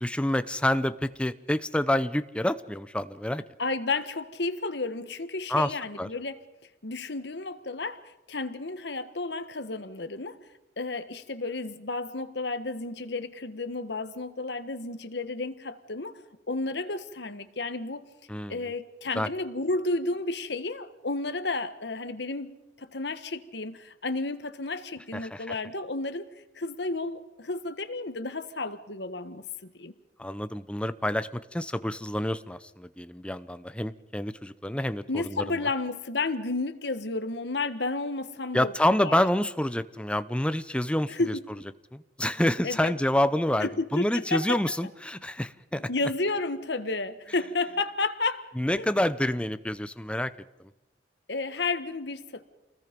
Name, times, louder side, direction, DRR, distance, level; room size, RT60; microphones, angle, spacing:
voice 1, 0.0-3.4 5.5-6.1 18.3-18.7 19.2-19.3 25.1-25.6 30.2-35.6 38.5-41.3 41.9-45.9 48.6-50.3, left 1 dB, 5° left, 0.7 m, -28 dB
voice 2, 3.6-6.4 6.8-10.4 10.8-18.1 18.5-22.5 22.8-26.3 26.5-29.9 35.1-38.7 39.0-39.2 41.1-41.4 42.6-42.9 43.6-44.6 45.9-48.5 48.8-48.9 51.3-52.4, left 3 dB, 70° left, 1.4 m, -32 dB
28.0 x 20.5 x 5.3 m
head